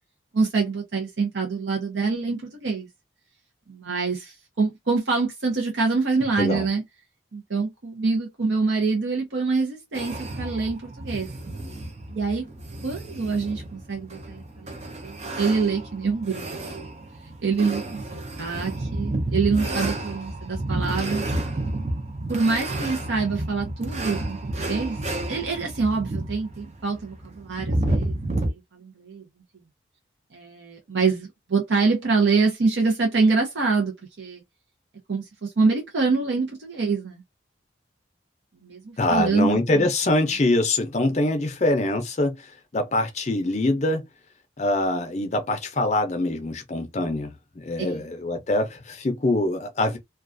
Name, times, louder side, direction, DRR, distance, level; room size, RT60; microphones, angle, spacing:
voice 1, 0.3-2.9 3.7-6.8 7.3-11.3 12.1-12.4 12.8-14.7 15.0-16.7 17.4-17.8 18.4-21.2 21.7-21.9 22.3-25.0 25.3-29.3 30.3-34.4 35.1-37.2 38.6-39.9 47.8-48.1, right 4 dB, 75° right, 0.7 m, -25 dB
sound 1, 9.9-28.5, right 1 dB, 35° right, 0.5 m, -31 dB
voice 2, 39.0-44.0 44.6-50.0, left 2 dB, 35° left, 0.5 m, -24 dB
2.3 x 2.2 x 2.5 m
head